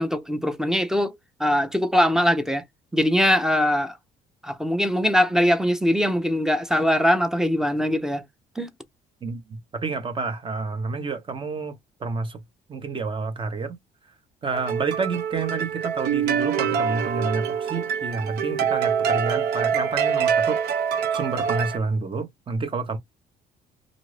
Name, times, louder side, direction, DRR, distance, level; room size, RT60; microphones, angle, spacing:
voice 1, 0.0-2.6 2.9-3.9 4.4-8.2 8.6-8.7, equal, 5° right, 0.6 m, -22 dB
voice 2, 9.2-11.7 12.0-12.4 12.7-13.8 14.4-20.6 21.1-23.0, right 4 dB, 30° right, 0.9 m, -29 dB
sound 1, 14.5-21.8, right 7 dB, 75° right, 0.6 m, -25 dB
2.5 x 2.5 x 3.2 m
cardioid pair, 110°, 17 cm